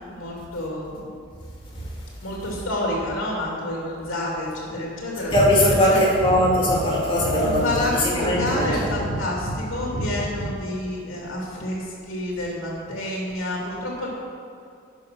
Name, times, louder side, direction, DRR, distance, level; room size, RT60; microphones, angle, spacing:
voice 1, 0.1-1.1 2.2-5.3 5.6-6.0 7.3-14.1, left 1 dB, 75° left, -3 dB, 2.3 m, -29 dB
voice 2, 5.3-9.2 9.4-9.5 9.9-10.5, equal, 25° left, -5 dB, 2.1 m, -21 dB
11.5 x 5.6 x 6.1 m, 2.4 s
head